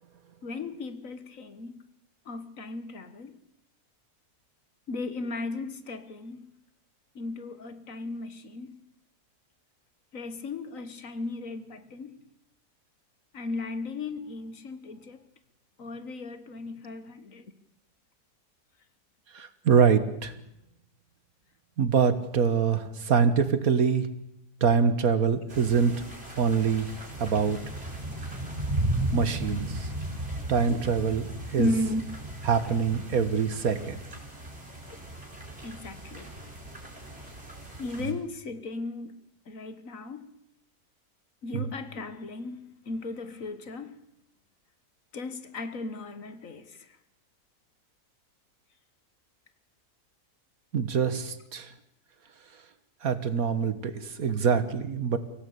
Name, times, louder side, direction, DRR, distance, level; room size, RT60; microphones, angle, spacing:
voice 1, 0.4-1.8 2.3-3.3 4.9-6.5 7.2-8.8 10.1-12.2 13.3-15.2 15.8-17.5 30.7-30.8 31.6-32.1 34.9-35.0 35.6-36.3 37.8-39.2 39.5-40.3 41.4-44.0 45.1-46.9, left 2 dB, 60° left, 1.8 m, -35 dB
voice 2, 19.3-20.3 21.8-24.1 24.6-26.0 26.4-26.9 27.2-27.6 29.1-29.9 30.5-31.7 32.5-34.0 41.5-41.7 50.7-51.7 53.0-55.2, right 6 dB, 70° right, 1.9 m, -24 dB
sound 1, 25.5-38.1, right 1 dB, 40° right, 5.9 m, -36 dB
24.0 x 17.0 x 8.6 m
omnidirectional pair, 1.6 m